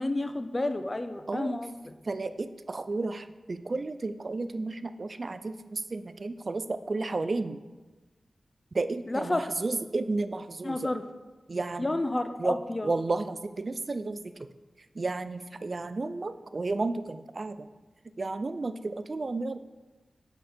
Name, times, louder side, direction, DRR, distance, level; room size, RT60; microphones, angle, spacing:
voice 1, 0.0-1.9 9.1-9.4 10.6-11.0 11.8-12.9, left 2 dB, 35° left, 9 dB, 0.5 m, -30 dB
voice 2, 2.1-7.6 8.7-10.8 11.5-11.9 12.4-12.5 12.8-14.3 15.0-17.7 18.2-19.6, right 3 dB, 55° right, 11 dB, 0.3 m, -32 dB
5.8 x 5.0 x 4.3 m, 1.2 s
cardioid pair, 45°, 0 cm